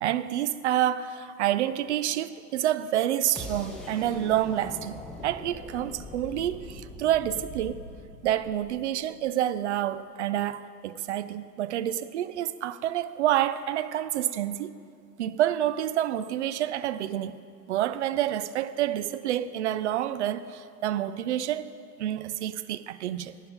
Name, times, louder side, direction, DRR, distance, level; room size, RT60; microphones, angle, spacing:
voice 1, 0.0-7.8 8.2-14.7 15.2-17.4 17.7-21.7 22.0-23.3, right 12 dB, 50° right, 0.4 m, -28 dB
sound 1, 3.4-9.3, left 1 dB, ahead, 1.1 m, -42 dB
11.5 x 9.0 x 5.0 m
figure-of-eight pair, 90°, 48 cm